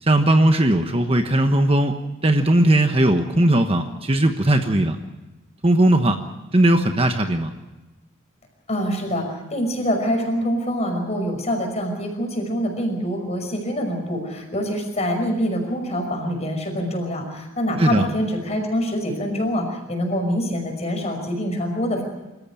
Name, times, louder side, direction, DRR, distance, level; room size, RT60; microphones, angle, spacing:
voice 1, 0.0-1.9 2.2-5.0 5.6-6.2 6.5-7.5 17.8-18.0, right 1 dB, 30° right, 6 dB, 1.2 m, -18 dB
voice 2, 8.7-22.0, equal, 35° left, 3 dB, 5.6 m, -25 dB
26.0 x 14.0 x 8.9 m, 1.1 s
head